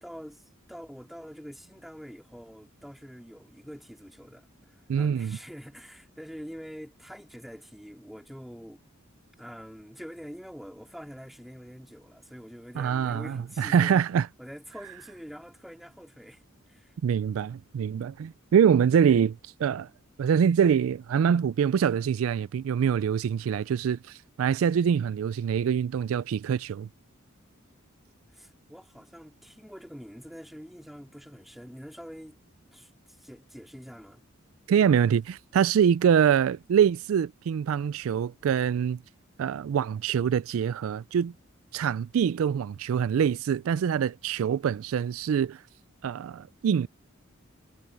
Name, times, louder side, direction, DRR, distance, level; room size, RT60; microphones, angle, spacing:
voice 1, 0.0-8.8 9.4-14.1 14.4-16.4 16.7-16.9 28.3-32.4 32.7-34.2, equal, ahead, 3.5 m, -45 dB
voice 2, 4.9-5.4 12.8-14.3 17.0-19.9 20.2-26.9 34.7-39.0 39.4-41.3 41.7-45.6 46.0-46.9, right 8 dB, 75° right, 0.3 m, -24 dB
head